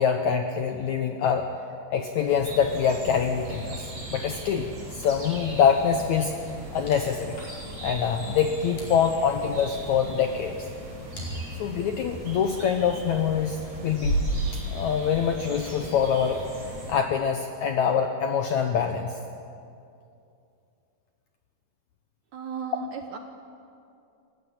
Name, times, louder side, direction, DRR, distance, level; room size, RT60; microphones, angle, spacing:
voice 1, 0.0-1.5 1.9-6.4 6.7-7.4 7.8-10.7 11.6-14.2 14.5-16.5 16.9-19.2 22.8-22.9, left 7 dB, 75° left, 5 dB, 1.7 m, -25 dB
sound 1, 2.3-16.9, right 1 dB, 45° right, 6.2 m, -39 dB
sound 2, 5.0-16.2, right 1 dB, 50° left, 6.1 m, -37 dB
voice 2, 22.3-23.2, right 7 dB, 70° right, 6 dB, 1.9 m, -35 dB
28.0 x 15.0 x 8.8 m, 2.6 s
omnidirectional pair, 4.5 m